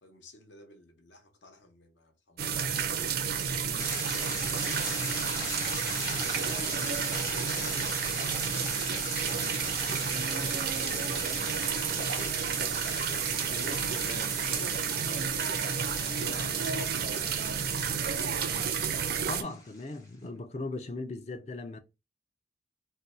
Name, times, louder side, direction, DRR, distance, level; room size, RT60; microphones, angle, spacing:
voice 1, 0.0-5.4 6.0-10.4 10.7-12.4 12.8-17.2 18.0-18.6, left 1 dB, 65° left, 0.7 m, -49 dB
sound 1, 2.4-19.4, right 7 dB, 50° right, 0.4 m, -31 dB
sound 2, 3.8-20.0, left 2 dB, 15° left, 0.8 m, -40 dB
voice 2, 19.3-21.8, left 2 dB, 35° left, 0.4 m, -38 dB
2.6 x 2.2 x 4.1 m
head